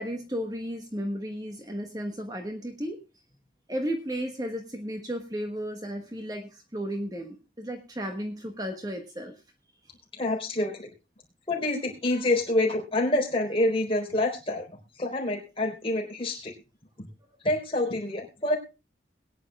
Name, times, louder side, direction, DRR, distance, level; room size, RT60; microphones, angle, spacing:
voice 1, 0.0-3.0 3.7-9.3, equal, 20° right, 4 dB, 1.4 m, -34 dB
voice 2, 10.1-10.9 11.5-14.7 14.9-16.5 17.0-17.1 17.4-18.6, left 1 dB, 30° left, 1 dB, 4.1 m, -27 dB
22.0 x 9.8 x 2.4 m, 0.28 s
head